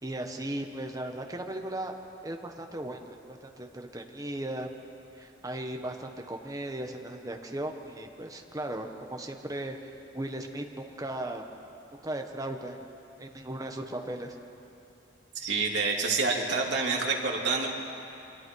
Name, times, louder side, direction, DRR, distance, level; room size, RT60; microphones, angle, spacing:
voice 1, 0.0-1.9 2.2-4.7 5.1-9.8 10.1-11.4 11.9-12.9 13.2-14.3, right 1 dB, 20° right, 3 dB, 1.4 m, -37 dB
voice 2, 15.3-17.7, right 4 dB, 70° right, -1 dB, 3.0 m, -27 dB
29.5 x 24.5 x 4.8 m, 2.8 s
head